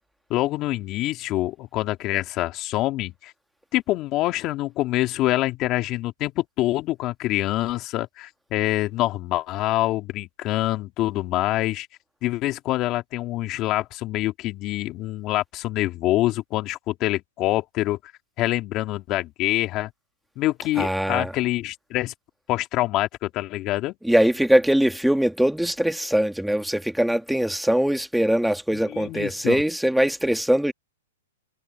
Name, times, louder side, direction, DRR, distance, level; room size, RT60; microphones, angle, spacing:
voice 1, 0.3-3.3 3.7-11.9 12.2-18.0 18.4-19.9 20.4-22.1 22.5-23.9 28.7-29.6, left 16 dB, 30° left, 2.6 m, -25 dB
voice 2, 20.8-21.3 24.0-30.7, right 1 dB, ahead, 1.8 m, -22 dB
hypercardioid pair, 150°, 0 cm